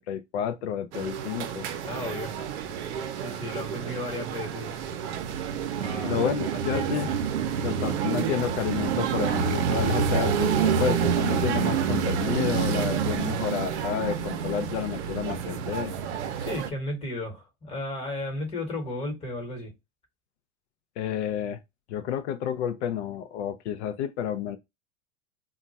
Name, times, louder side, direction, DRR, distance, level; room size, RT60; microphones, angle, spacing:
voice 1, 0.0-1.7 6.0-7.1 7.6-15.9 21.0-21.6 21.9-24.6, left 9 dB, 75° left, 0.5 m, -30 dB
sound 1, 0.9-16.7, right 7 dB, 90° right, 0.6 m, -28 dB
voice 2, 1.8-2.4 3.1-4.9 5.8-6.3 6.7-7.1 16.4-19.7, left 1 dB, 15° left, 1.1 m, -34 dB
2.3 x 2.2 x 3.9 m
supercardioid pair, 135°, 34 cm